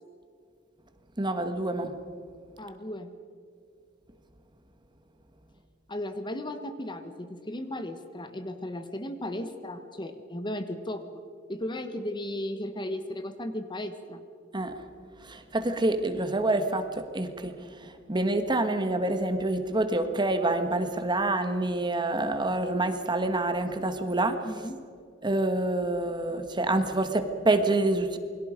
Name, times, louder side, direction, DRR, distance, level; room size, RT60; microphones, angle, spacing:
voice 1, 1.2-1.9 14.5-14.8 15.2-17.6 17.8-24.5 25.2-28.2, right 2 dB, 25° right, 8 dB, 1.5 m, -27 dB
voice 2, 2.6-3.1 5.9-11.1 11.5-14.2 24.4-24.8, left 1 dB, 25° left, 9 dB, 1.3 m, -35 dB
28.5 x 22.5 x 5.1 m, 2.3 s
head